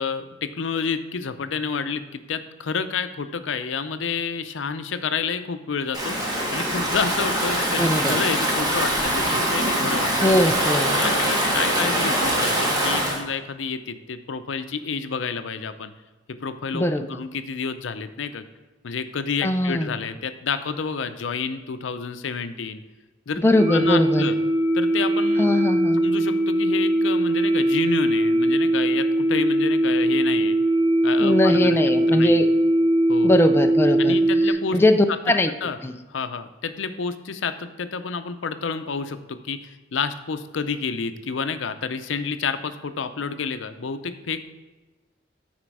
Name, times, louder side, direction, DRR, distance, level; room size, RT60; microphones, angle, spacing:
voice 1, 0.0-6.2 6.5-10.1 10.9-15.9 16.4-18.5 18.8-22.8 23.3-24.4 24.7-25.4 26.0-30.6 31.0-31.8 32.1-32.4 33.1-33.4 34.0-34.8 35.6-35.8 36.1-44.4, left 5 dB, 90° left, 10 dB, 0.6 m, -29 dB
Stream / Ocean, 5.9-13.2, right 1 dB, 20° right, 1.4 m, -23 dB
voice 2, 7.8-8.2 10.2-11.0 16.7-17.0 19.4-19.9 23.4-24.2 25.4-26.0 31.2-32.5 33.2-34.2 34.5-35.5 35.8-35.9, left 1 dB, 15° left, 6 dB, 0.4 m, -20 dB
sound 1, 23.5-34.5, right 1 dB, 65° right, 2.4 m, -20 dB
10.0 x 4.4 x 4.7 m, 1.2 s
head